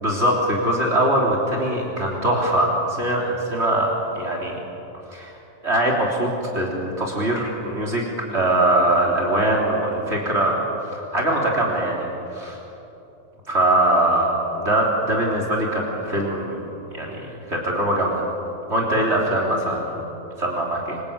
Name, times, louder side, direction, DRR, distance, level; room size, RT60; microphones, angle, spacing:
voice 1, 0.0-4.6 5.1-5.3 5.6-8.0 8.3-12.1 12.3-12.6 13.5-16.6 16.9-18.2 18.7-20.1 20.4-21.0, right 1 dB, 50° right, -2 dB, 3.9 m, -22 dB
27.0 x 24.5 x 8.8 m, 2.9 s
omnidirectional pair, 1.4 m